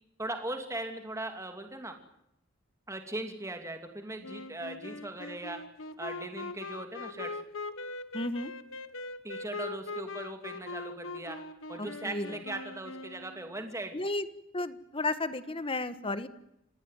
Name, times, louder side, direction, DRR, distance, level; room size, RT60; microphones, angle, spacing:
voice 1, 0.2-2.0 2.9-5.6 6.0-7.3 9.2-11.4 11.7-14.0, right 2 dB, 15° right, 5 dB, 2.8 m, -39 dB
Wind instrument woodwind instrument, 4.2-13.7, left 3 dB, 75° left, 1.8 m, -41 dB
voice 2, 8.1-8.5 11.8-12.3 13.9-14.3 14.5-16.3, left 2 dB, 25° left, 12 dB, 1.5 m, -33 dB
27.0 x 19.0 x 9.3 m, 0.81 s
head